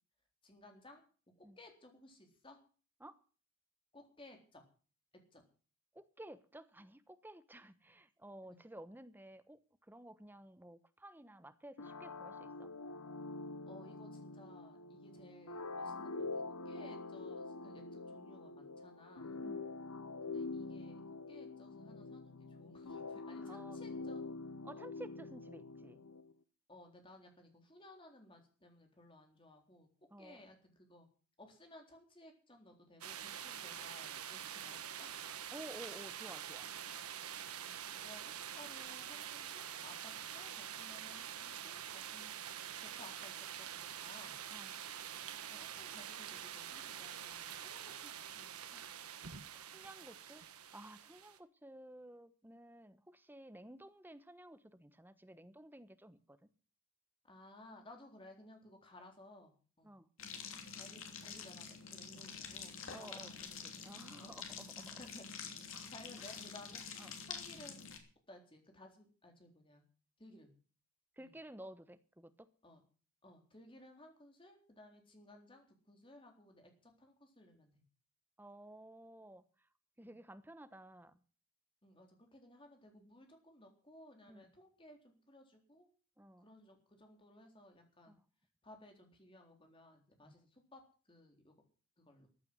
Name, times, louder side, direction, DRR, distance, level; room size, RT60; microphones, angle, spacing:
voice 1, 0.4-1.0 1.6-2.6 3.9-4.6 5.3-5.4 8.5-8.6 13.7-19.4 20.2-24.2 24.7-24.9 26.7-29.9 30.2-31.1 31.4-35.1 37.6-42.3 42.8-44.4 45.5-48.8 57.3-59.9 60.7-64.4 65.0-65.2 65.9-66.8 67.3-67.9 68.3-69.8 70.2-70.5 71.2-71.4 72.6-72.8 73.2-77.8 80.0-80.1 81.8-85.9 86.4-88.2 88.6-90.8 91.1-91.5 92.0-92.3, left 1 dB, 25° left, 3 dB, 3.8 m, -59 dB
voice 2, 5.9-12.7 19.4-19.7 23.4-23.8 24.6-26.0 30.1-30.4 35.5-36.7 44.5-44.8 49.2-56.5 59.8-60.1 62.9-64.9 65.7-65.9 66.2-66.4 67.0-67.1 71.2-72.5 78.4-79.4 80.0-81.1 84.3-84.5 86.2-86.5 88.0-88.1 90.2-90.3, right 1 dB, 10° right, 11 dB, 1.0 m, -54 dB
sound 1, 11.8-26.3, left 3 dB, 90° left, 1.1 m, -45 dB
sound 2, 33.0-51.4, right 9 dB, 85° right, 1.4 m, -46 dB
sound 3, 60.2-68.0, left 6 dB, 60° left, 3.1 m, -47 dB
14.5 x 9.1 x 8.1 m, 0.39 s
head